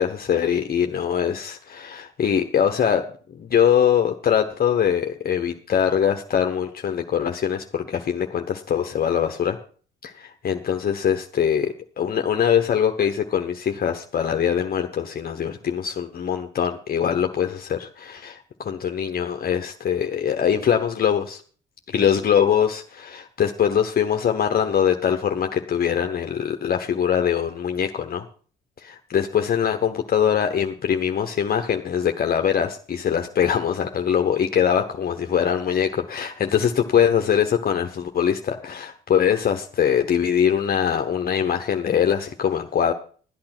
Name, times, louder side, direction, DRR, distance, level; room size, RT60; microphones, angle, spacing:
voice 1, 0.0-3.0 3.4-9.6 10.0-21.4 21.9-28.2 28.8-42.9, left 8 dB, 50° left, 5 dB, 1.1 m, -22 dB
12.5 x 8.7 x 6.0 m, 0.43 s
cardioid pair, 90°, 20 cm